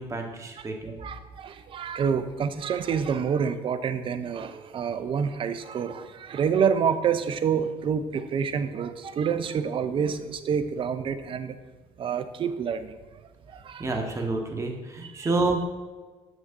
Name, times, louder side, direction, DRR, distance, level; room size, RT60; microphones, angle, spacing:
voice 1, 0.0-1.0 13.8-15.6, right 3 dB, 25° right, 2 dB, 1.2 m, -28 dB
voice 2, 0.8-11.6 12.0-13.2 13.5-13.9 15.0-15.3, right 7 dB, 45° right, 11 dB, 0.5 m, -28 dB
7.2 x 6.3 x 2.6 m, 1.3 s
supercardioid pair, 85°, 12 cm